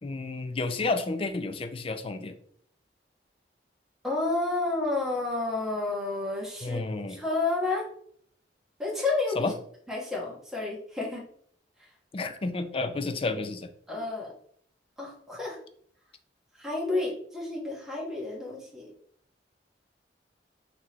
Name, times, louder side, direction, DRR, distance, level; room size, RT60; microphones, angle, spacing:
voice 1, 0.0-2.4 6.6-7.2 9.4-9.5 12.1-13.7, left 3 dB, 30° left, 9 dB, 0.4 m, -31 dB
voice 2, 4.0-6.8 7.1-7.8 8.8-9.5 9.9-11.2 13.9-14.3 15.0-15.6 16.6-18.9, left 3 dB, 5° right, -4 dB, 1.4 m, -30 dB
5.8 x 3.0 x 3.0 m, 0.63 s
head